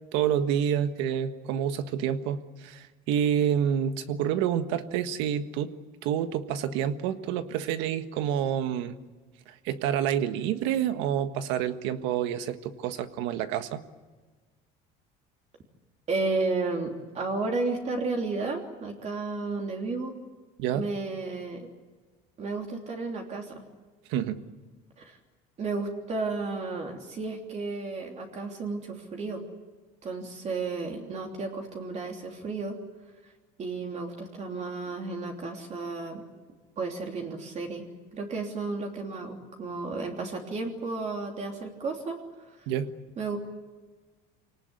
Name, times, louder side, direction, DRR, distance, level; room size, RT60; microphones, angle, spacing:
voice 1, 0.1-5.7 6.0-8.9 9.5-13.8 20.6-20.8 24.1-24.4 42.7-42.9, right 9 dB, 80° right, 9 dB, 1.6 m, -28 dB
voice 2, 16.1-20.2 20.7-21.7 22.4-23.6 25.0-25.2 25.6-29.4 30.0-32.8 33.2-33.3 33.6-36.2 36.8-37.9 38.1-42.2 42.5-42.6 43.2-43.4, right 3 dB, 40° right, 1 dB, 3.2 m, -33 dB
25.5 x 18.5 x 9.7 m, 1.4 s
cardioid pair, 130°, 19 cm